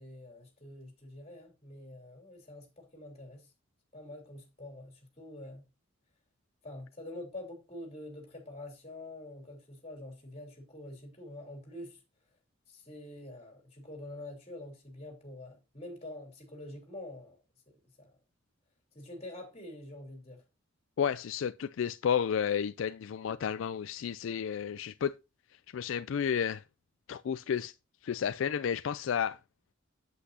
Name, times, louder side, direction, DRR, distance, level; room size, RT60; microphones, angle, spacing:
voice 1, 0.0-3.5 3.9-5.6 6.6-12.0 12.7-17.4 18.0-18.1 18.9-20.4, left 1 dB, 30° left, 3.5 m, -46 dB
voice 2, 21.0-25.1 25.7-26.6 27.1-27.7 28.0-29.4, left 7 dB, 75° left, 0.4 m, -31 dB
8.4 x 8.0 x 2.7 m
head